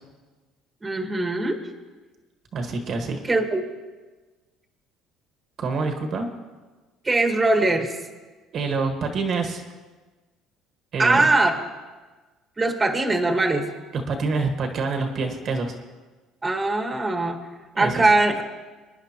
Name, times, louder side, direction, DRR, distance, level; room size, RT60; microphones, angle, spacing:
voice 1, 0.8-1.6 3.3-3.6 7.0-8.0 11.0-11.6 12.6-13.7 16.4-17.4 17.8-18.3, right 2 dB, 15° right, 3 dB, 1.5 m, -21 dB
voice 2, 2.5-3.2 5.6-6.3 8.5-9.6 10.9-11.3 13.9-15.7 17.7-18.0, right 4 dB, 50° right, 5 dB, 1.5 m, -26 dB
26.0 x 10.0 x 3.0 m, 1.3 s
cardioid pair, 125°, 0 cm